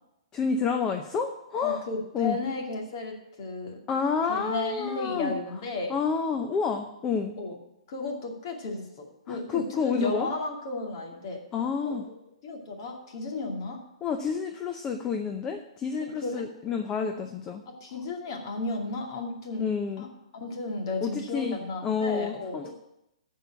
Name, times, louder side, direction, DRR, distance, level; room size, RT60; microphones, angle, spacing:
voice 1, 0.3-1.8 2.1-2.4 3.9-5.3 5.9-7.3 9.3-10.3 11.5-12.0 14.0-17.6 19.6-20.1 21.0-22.7, left 5 dB, 15° left, 5 dB, 0.6 m, -29 dB
voice 2, 1.6-3.8 4.3-5.9 7.4-7.6 7.9-11.4 11.8-12.0 12.4-13.8 16.0-16.4 17.7-19.6 20.0-20.1 20.3-22.7, left 3 dB, 45° left, 1 dB, 2.4 m, -34 dB
14.0 x 4.7 x 7.8 m, 0.87 s
hypercardioid pair, 160°, 3 cm